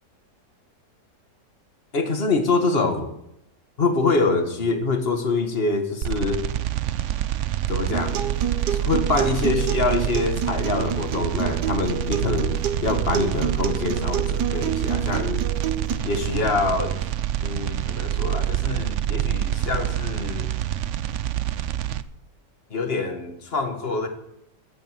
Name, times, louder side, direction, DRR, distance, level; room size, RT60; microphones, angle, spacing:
voice 1, 1.9-3.1 3.8-6.4 7.7-8.2 8.7-12.6 12.8-15.4 16.0-17.0 17.4-20.5 22.7-24.1, left 3 dB, 35° left, 6 dB, 1.7 m, -25 dB
sound 1, 6.0-22.0, right 12 dB, 65° right, 0.8 m, -26 dB
Acoustic guitar, 7.9-15.9, right 8 dB, 80° right, 1.7 m, -29 dB
15.0 x 9.1 x 7.4 m, 0.81 s
omnidirectional pair, 1.8 m